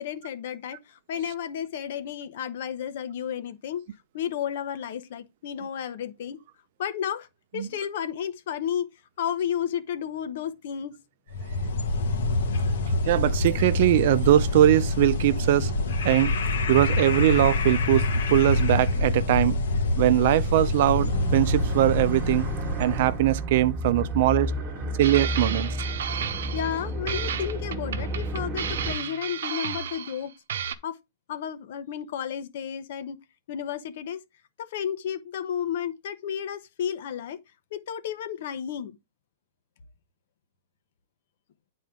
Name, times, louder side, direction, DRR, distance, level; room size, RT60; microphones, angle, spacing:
voice 1, 0.0-3.8 4.1-6.4 6.8-7.3 7.5-8.9 9.2-10.9 24.8-25.0 25.9-30.3 30.8-31.0 31.3-33.2 33.5-34.2 34.6-37.4 37.7-38.9, left 9 dB, 60° left, 1.0 m, -32 dB
sound 1, 11.3-23.2, left 2 dB, 80° left, 1.5 m, -26 dB
voice 2, 13.1-15.7 16.0-16.3 16.7-19.5 20.0-22.5 22.8-24.5 25.0-25.8, right 13 dB, 55° right, 0.5 m, -21 dB
sound 2, 21.1-29.0, right 1 dB, 25° right, 1.4 m, -32 dB
sound 3, 25.0-26.8 27.1-30.2 30.5-30.7, right 8 dB, 80° right, 0.8 m, -33 dB
9.1 x 4.2 x 3.7 m
hypercardioid pair, 155°, 0 cm